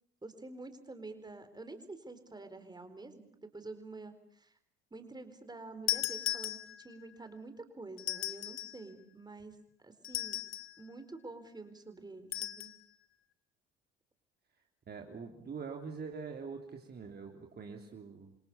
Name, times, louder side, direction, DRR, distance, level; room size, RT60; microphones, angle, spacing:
voice 1, 0.2-4.6 4.9-9.6 9.8-10.4 10.8-12.7, right 3 dB, 15° right, 9 dB, 4.4 m, -48 dB
sound 1, 5.9-7.0 8.0-8.8 10.0-10.8 12.3-12.8, left 13 dB, 40° left, 1.6 m, -36 dB
voice 2, 14.9-18.4, right 5 dB, 30° right, 2 dB, 3.4 m, -44 dB
29.5 x 25.5 x 7.1 m, 0.68 s
figure-of-eight pair, 60°, 31 cm